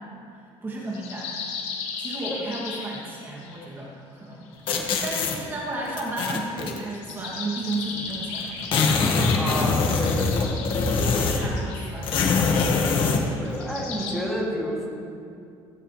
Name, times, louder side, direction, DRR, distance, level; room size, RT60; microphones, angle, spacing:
voice 1, 0.6-1.3 2.0-4.5 5.0-8.7 9.1-10.5 11.0-12.5, right 2 dB, 20° right, -4 dB, 2.6 m, -34 dB
sound 1, 0.9-3.6 4.4-6.1 6.8-14.1, left 5 dB, 90° left, 2.6 m, -36 dB
sound 2, 4.7-5.4 6.0-6.8 7.7-7.8 8.1-8.2 8.4-11.6 12.0-13.3, left 4 dB, 55° left, 1.8 m, -23 dB
voice 2, 9.4-10.6 13.4-14.9, equal, ahead, -5 dB, 2.8 m, -30 dB
16.5 x 16.0 x 3.4 m, 2.5 s
cardioid pair, 145°, 10 cm